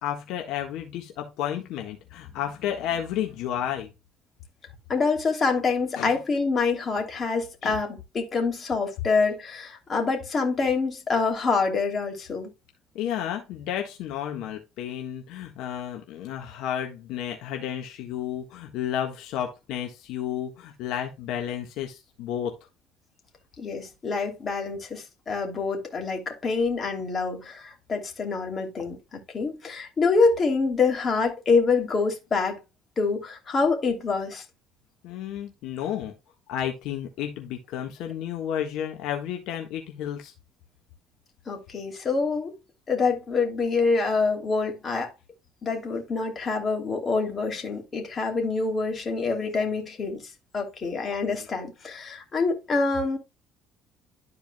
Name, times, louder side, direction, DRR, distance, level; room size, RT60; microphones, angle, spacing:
voice 1, 0.0-3.9 6.0-6.1 7.6-7.8 12.9-22.5 35.0-36.1 36.5-40.3 51.3-51.4, left 10 dB, 75° left, 1.4 m, -32 dB
voice 2, 4.9-12.5 23.6-32.6 33.0-34.4 41.5-42.5 42.9-45.1 45.6-53.2, left 4 dB, 35° left, 2.9 m, -26 dB
12.5 x 4.7 x 2.2 m
cardioid pair, 110°, 0 cm